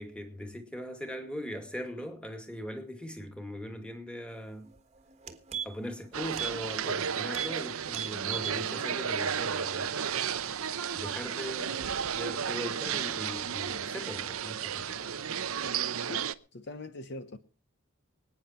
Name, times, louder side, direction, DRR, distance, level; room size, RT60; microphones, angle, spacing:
voice 1, 0.0-4.7 5.6-9.9 10.9-15.2, equal, 5° left, 2.2 m, -40 dB
sound 1, 4.7-4.8 5.1-6.0 6.3-6.6 6.9-7.0 7.3-7.6 7.9-8.6 9.0-9.1, right 7 dB, 30° right, 1.4 m, -37 dB
sound 2, 6.1-16.3, right 8 dB, 80° right, 0.8 m, -33 dB
voice 2, 16.1-17.4, left 2 dB, 50° left, 1.0 m, -42 dB
24.5 x 9.5 x 4.4 m
head